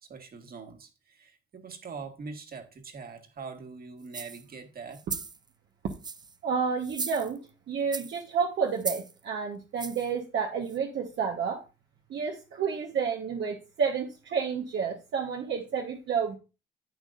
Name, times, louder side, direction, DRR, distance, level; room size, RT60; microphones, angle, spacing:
voice 1, 0.0-5.0, right 5 dB, 50° right, 1.9 m, -43 dB
sound 1, 4.1-4.4 4.9-5.4 5.9-6.4 6.8-7.5 7.9-8.2 8.8-9.1 9.8-10.1 10.7-10.8, right 4 dB, 20° right, 0.5 m, -37 dB
voice 2, 6.4-7.4 7.7-11.6 12.1-16.4, right 6 dB, 65° right, 1.2 m, -30 dB
10.5 x 8.3 x 2.6 m
cardioid pair, 90°, 20 cm